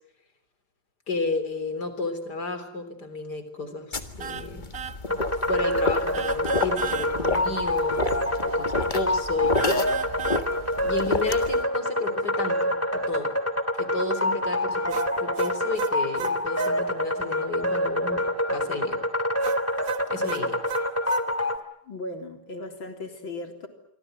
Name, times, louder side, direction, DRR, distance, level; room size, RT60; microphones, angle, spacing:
voice 1, 1.1-4.6 5.1-5.2 5.5-8.1 8.4-9.6 10.8-13.3 13.8-19.0 20.1-20.6, left 3 dB, 50° left, 10 dB, 4.1 m, -31 dB
sound 1, 3.9-11.6, left 3 dB, 25° left, 1.6 m, -30 dB
sound 2, 4.2-4.5 4.7-5.0 6.1-7.1 9.5-10.5 14.9-16.8 19.4-21.3, right 9 dB, 45° right, 1.6 m, -34 dB
sound 3, 5.1-21.6, left 1 dB, 5° left, 2.0 m, -27 dB
voice 2, 21.8-23.7, left 2 dB, 70° left, 5 dB, 4.3 m, -37 dB
27.5 x 24.0 x 7.8 m, 0.73 s
omnidirectional pair, 2.2 m